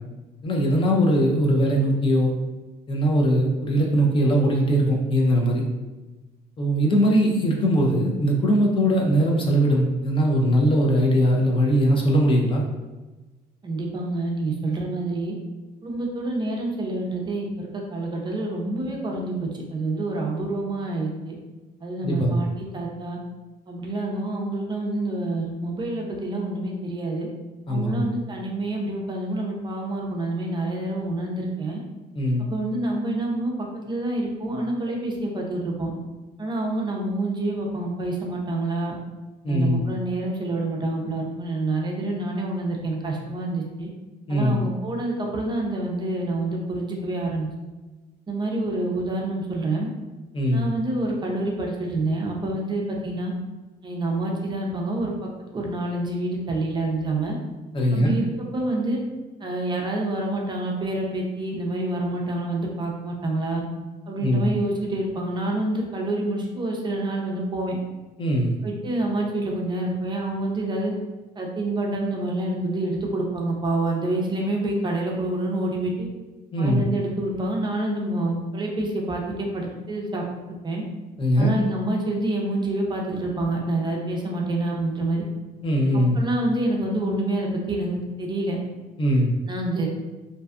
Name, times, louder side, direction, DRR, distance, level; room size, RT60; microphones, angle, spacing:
voice 1, 0.4-2.3 2.9-5.6 6.6-12.6 22.0-22.4 27.7-28.0 32.1-32.5 39.4-39.8 44.3-44.6 50.3-50.6 57.7-58.2 64.2-64.5 68.2-68.6 76.5-76.8 81.2-81.5 85.6-86.2 89.0-89.3, equal, 30° left, -1 dB, 0.4 m, -20 dB
voice 2, 13.6-15.3 15.8-21.3 21.8-23.2 23.7-27.3 27.7-31.8 32.4-33.5 33.9-35.9 36.4-38.9 39.5-43.9 44.3-47.5 48.3-49.9 50.5-53.3 53.8-55.1 55.5-57.4 57.9-58.3 58.5-59.0 59.4-63.6 64.1-67.8 68.6-70.9 71.4-76.1 76.6-80.2 80.6-80.8 81.4-85.2 85.9-88.6 89.5-89.9, right 2 dB, 25° right, -1 dB, 0.5 m, -27 dB
2.5 x 2.3 x 2.3 m, 1.2 s
cardioid pair, 110°, 17 cm